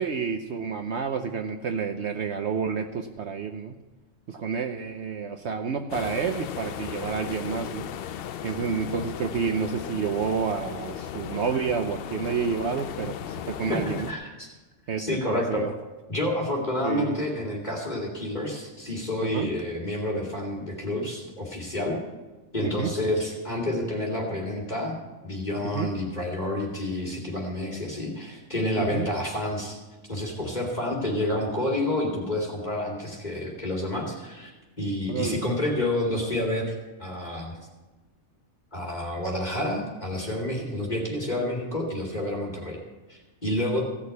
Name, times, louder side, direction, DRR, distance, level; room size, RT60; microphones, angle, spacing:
voice 1, 0.0-3.8 4.3-7.9 8.4-14.1 14.9-15.7 16.8-17.2 19.2-19.5 22.6-22.9 25.6-25.9 28.8-29.1 35.1-35.5, right 6 dB, 60° right, 6 dB, 1.0 m, -29 dB
sound 1, 5.9-14.1, left 10 dB, 65° left, 0.6 m, -36 dB
voice 2, 14.1-14.5 15.0-15.6 16.1-22.0 22.5-25.0 25.2-29.8 30.1-34.5 34.8-37.6 38.7-42.8 43.1-43.9, left 1 dB, 30° left, -1 dB, 2.5 m, -29 dB
16.0 x 6.4 x 8.2 m, 1.2 s
omnidirectional pair, 1.4 m